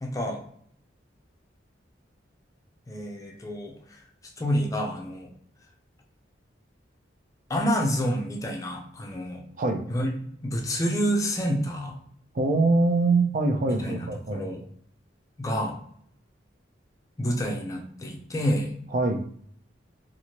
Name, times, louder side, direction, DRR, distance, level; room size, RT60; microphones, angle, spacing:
voice 1, 0.0-0.4 2.9-4.0 4.4-5.3 7.5-9.4 9.9-10.1 10.4-12.0 13.7-14.6 15.4-15.8 17.2-18.7, equal, 20° left, 1 dB, 0.5 m, -28 dB
voice 2, 12.3-14.5 18.9-19.2, right 3 dB, 45° right, 5 dB, 0.4 m, -23 dB
2.9 x 2.5 x 2.8 m, 0.62 s
head